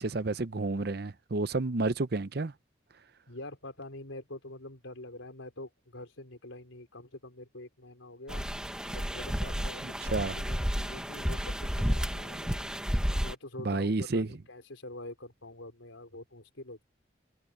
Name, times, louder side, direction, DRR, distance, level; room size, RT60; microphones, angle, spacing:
voice 1, 0.0-2.5 9.8-10.4 13.6-14.4, right 3 dB, 50° right, 0.7 m, -30 dB
voice 2, 3.3-8.5 8.9-12.7 13.1-16.8, left 1 dB, 80° left, 4.6 m, -46 dB
sound 1, 8.3-13.3, equal, 5° right, 1.2 m, -32 dB
head